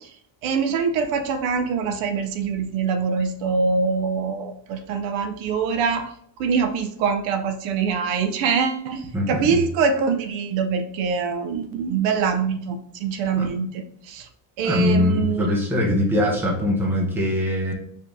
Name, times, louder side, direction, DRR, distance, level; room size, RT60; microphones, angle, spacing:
voice 1, 0.4-6.1 6.4-14.3 14.6-15.5, right 5 dB, 75° right, 8 dB, 0.7 m, -24 dB
voice 2, 9.1-9.6 13.4-13.5 14.6-17.7, left 1 dB, 5° right, -2 dB, 0.7 m, -22 dB
5.0 x 2.8 x 3.5 m, 0.65 s
cardioid pair, 170°, 47 cm